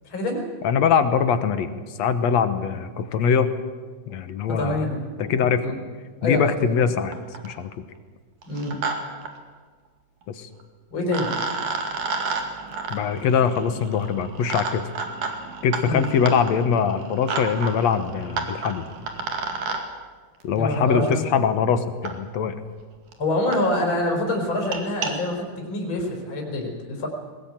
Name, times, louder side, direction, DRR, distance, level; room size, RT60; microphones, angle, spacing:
voice 1, 0.0-0.4 4.6-5.8 6.2-6.4 6.9-7.0 8.4-8.8 10.9-11.3 15.8-16.0 20.5-21.2 23.2-27.1, left 1 dB, 40° left, 1 dB, 4.8 m, -26 dB
voice 2, 0.6-3.5 4.1-4.9 5.2-5.6 6.2-7.2 7.4-7.9 10.3-10.5 12.9-14.8 15.6-18.9 20.4-22.6, left 7 dB, 65° left, 11 dB, 2.1 m, -22 dB
sound 1, 6.8-6.9 7.1-7.6 8.4-8.9 9.2-9.3 10.6-10.7 11.1-19.8 21.1-21.2 22.0-22.1 22.8-22.9 23.1-23.2 23.5-23.6 23.9-24.1 24.5-25.1, right 4 dB, 75° right, 3.7 m, -31 dB
20.5 x 20.0 x 8.8 m, 1.5 s
omnidirectional pair, 3.7 m